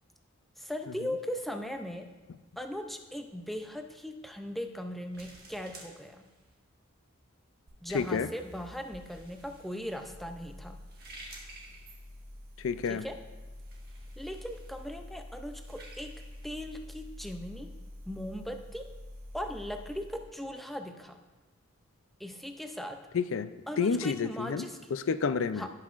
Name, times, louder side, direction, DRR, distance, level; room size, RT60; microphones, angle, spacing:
voice 1, 0.6-2.1 2.6-6.3 7.8-10.8 12.9-13.2 14.2-17.7 18.1-18.9 19.3-21.2 22.2-23.0 23.7-24.9 25.6-25.7, equal, ahead, 5 dB, 0.4 m, -39 dB
sound 1, 1.6-17.8, right 2 dB, 45° right, 1.5 m, -55 dB
sound 2, 7.7-20.4, left 1 dB, 65° right, 1.6 m, -48 dB
voice 2, 7.9-8.3 12.6-13.0 23.1-23.5 23.8-25.7, left 5 dB, 65° left, 13 dB, 0.4 m, -30 dB
16.5 x 5.7 x 2.5 m, 1.2 s
head